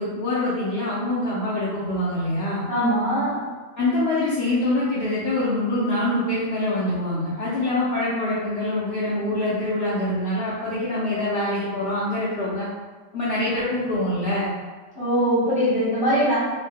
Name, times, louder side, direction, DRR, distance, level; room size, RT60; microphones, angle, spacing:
voice 1, 0.0-2.7 3.8-12.7 13.1-14.5, left 1 dB, 90° left, -9 dB, 0.5 m, -25 dB
voice 2, 2.7-3.4 15.0-16.4, equal, 10° right, -10 dB, 0.5 m, -21 dB
3.0 x 2.1 x 3.4 m, 1.3 s
omnidirectional pair, 1.8 m